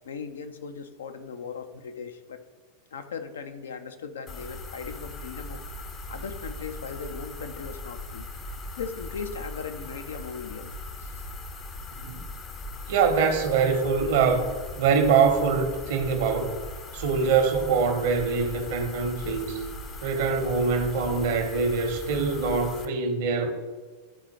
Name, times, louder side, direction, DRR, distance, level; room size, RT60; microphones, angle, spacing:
voice 1, 0.0-2.4 2.9-5.6 6.1-8.3 8.8-10.7 11.0-11.2, left 5 dB, 65° left, 0.6 m, -38 dB
sound 1, 4.3-22.9, left 2 dB, 25° left, 0.6 m, -39 dB
voice 2, 12.9-14.5 14.8-16.5 16.9-19.6 20.0-23.5, right 5 dB, 50° right, 0.9 m, -24 dB
11.5 x 4.0 x 3.0 m
figure-of-eight pair, 90°, 0 cm